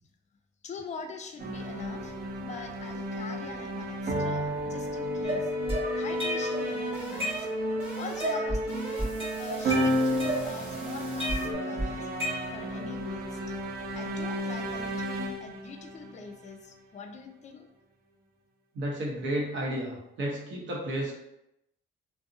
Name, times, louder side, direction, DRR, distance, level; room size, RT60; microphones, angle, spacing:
voice 1, 0.6-5.5 6.0-7.5 8.0-9.1 9.4-12.1 12.5-13.4 13.9-17.7, left 4 dB, 35° left, 6 dB, 0.4 m, -43 dB
sound 1, 1.4-16.7, right 1 dB, 50° right, 0.5 m, -33 dB
sound 2, 4.5-11.5, left 4 dB, 5° right, 0.7 m, -36 dB
sound 3, 5.2-6.7 7.0-7.8 8.2-8.7 9.0-10.8 11.2-12.8, right 1 dB, 25° right, 1.0 m, -32 dB
voice 2, 18.7-21.2, right 1 dB, 70° right, -2 dB, 0.8 m, -32 dB
2.5 x 2.0 x 2.6 m, 0.84 s
cardioid pair, 90°, 20 cm